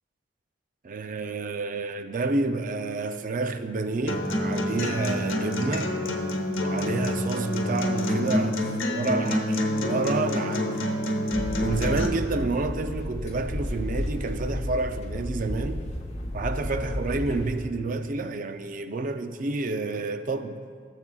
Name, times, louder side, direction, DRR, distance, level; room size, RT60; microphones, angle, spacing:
voice 1, 0.8-5.9 6.6-10.8 11.6-15.9 16.3-20.6, right 3 dB, 45° right, 0.4 m, -29 dB
Acoustic guitar, 4.1-12.1, left 1 dB, 90° left, 1.0 m, -27 dB
sound 1, 11.3-17.6, left 1 dB, 35° left, 1.0 m, -32 dB
17.0 x 7.3 x 2.3 m
head